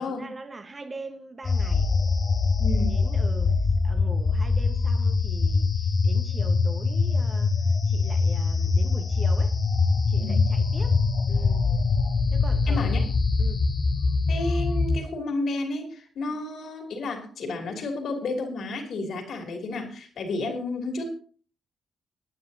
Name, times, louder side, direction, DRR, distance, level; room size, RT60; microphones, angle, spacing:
voice 1, 0.0-1.9 2.9-3.6 3.8-5.7 6.0-7.5 7.9-9.5 10.1-11.0 11.3-11.6 12.3-12.9 13.4-13.6 16.3-16.4, right 3 dB, 35° right, 1.2 m, -41 dB
sound 1, 1.4-15.0, left 4 dB, 45° left, 0.9 m, -23 dB
voice 2, 2.6-3.0 10.2-10.4 12.7-13.1 14.3-21.1, left 2 dB, 65° left, 2.9 m, -31 dB
20.5 x 9.6 x 2.8 m
supercardioid pair, 55°, 0 cm